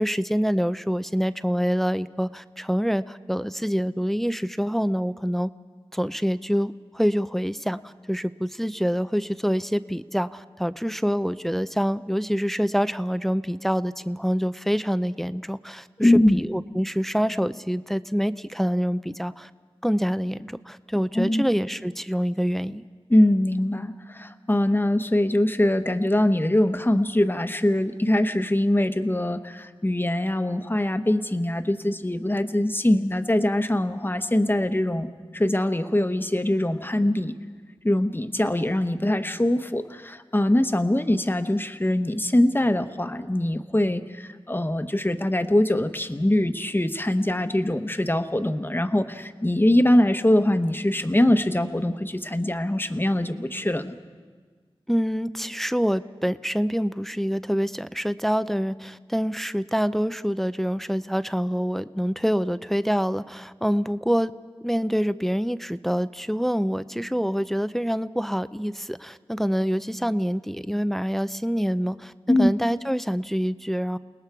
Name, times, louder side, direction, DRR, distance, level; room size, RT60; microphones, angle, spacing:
voice 1, 0.0-5.5 5.9-19.5 19.8-22.8 54.9-64.3 64.6-74.0, equal, 5° left, 14 dB, 0.5 m, -26 dB
voice 2, 16.0-16.4 21.1-21.4 23.1-35.1 35.3-37.3 37.8-53.9 72.3-72.5, left 1 dB, 20° left, 8 dB, 1.0 m, -22 dB
29.0 x 19.5 x 4.7 m, 1.5 s
wide cardioid pair, 55°, 10 cm